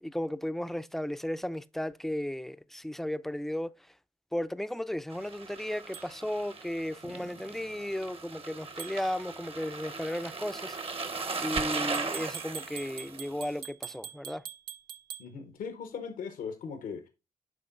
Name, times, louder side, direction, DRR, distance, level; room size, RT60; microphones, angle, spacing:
voice 1, 0.0-3.7 4.3-11.1 11.4-14.4, left 1 dB, ahead, 0.4 m, -35 dB
sound 1, 5.1-13.6, right 4 dB, 45° right, 1.0 m, -38 dB
sound 2, 5.9-6.1 8.8-9.0 11.7-15.3, right 9 dB, 85° right, 0.6 m, -43 dB
voice 2, 15.2-17.1, left 6 dB, 85° left, 1.0 m, -39 dB
11.0 x 3.8 x 2.5 m
cardioid pair, 55°, 14 cm